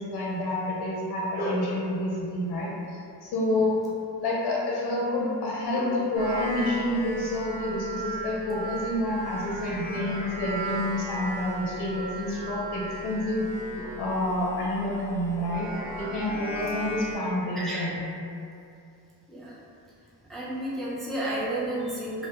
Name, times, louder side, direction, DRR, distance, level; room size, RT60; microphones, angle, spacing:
voice 1, 0.0-3.8 4.2-13.4 13.8-15.7 16.0-18.1, left 1 dB, 75° left, -4 dB, 0.6 m, -28 dB
sound 1, 6.1-17.2, right 2 dB, 50° right, 1.0 m, -37 dB
voice 2, 17.5-17.9 19.3-19.5 20.3-22.3, right 1 dB, ahead, -7 dB, 0.4 m, -31 dB
2.1 x 2.1 x 2.8 m, 2.5 s
cardioid pair, 95°, 39 cm